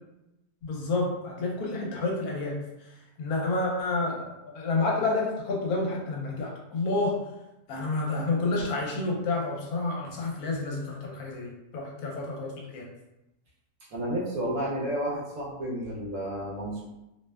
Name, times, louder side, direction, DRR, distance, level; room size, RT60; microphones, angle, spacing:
voice 1, 0.6-2.6 3.2-7.2 7.7-12.9, left 3 dB, 75° left, -2 dB, 1.1 m, -29 dB
voice 2, 13.8-16.8, right 1 dB, 65° right, -5 dB, 0.9 m, -31 dB
2.7 x 2.0 x 2.2 m, 0.94 s
omnidirectional pair, 1.6 m